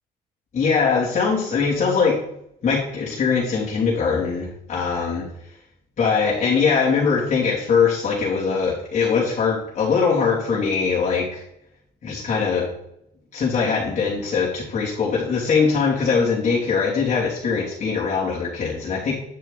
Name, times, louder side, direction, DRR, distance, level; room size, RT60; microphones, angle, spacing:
voice 1, 0.5-2.2 2.6-5.3 6.0-11.4 12.0-12.7 13.3-19.2, left 5 dB, 45° left, -8 dB, 2.9 m, -21 dB
9.6 x 6.7 x 4.1 m, 0.76 s
cardioid pair, 110°, 17 cm